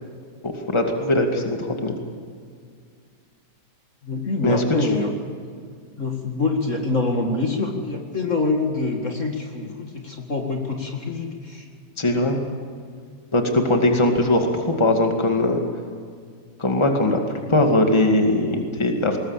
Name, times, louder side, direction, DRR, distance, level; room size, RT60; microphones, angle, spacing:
voice 1, 0.7-2.0 4.4-4.6 12.0-12.4 13.3-15.6 16.6-17.2 17.5-19.2, left 1 dB, 15° left, 3 dB, 2.2 m, -20 dB
voice 2, 4.0-5.1 6.0-11.6, left 3 dB, 45° left, 2 dB, 2.2 m, -25 dB
21.0 x 20.0 x 7.4 m, 2.1 s
omnidirectional pair, 1.8 m